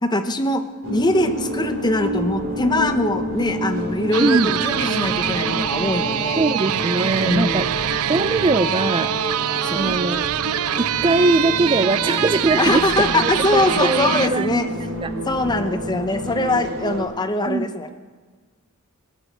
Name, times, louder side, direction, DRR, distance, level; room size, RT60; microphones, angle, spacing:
voice 1, 0.0-6.4 7.2-7.6 9.6-10.0 12.6-14.7 15.3-17.9, left 1 dB, 20° left, 8 dB, 0.8 m, -22 dB
sound 1, 0.8-17.0, equal, 60° right, 2.8 m, -29 dB
sound 2, 4.1-14.3, right 10 dB, 90° right, 0.4 m, -24 dB
voice 2, 4.2-4.6 6.4-7.7 8.1-9.1 9.7-10.3 10.8-12.8 13.1-15.1 16.4-16.6 17.5-17.8, right 3 dB, 25° right, 12 dB, 0.3 m, -21 dB
18.5 x 8.2 x 7.4 m, 1.5 s
head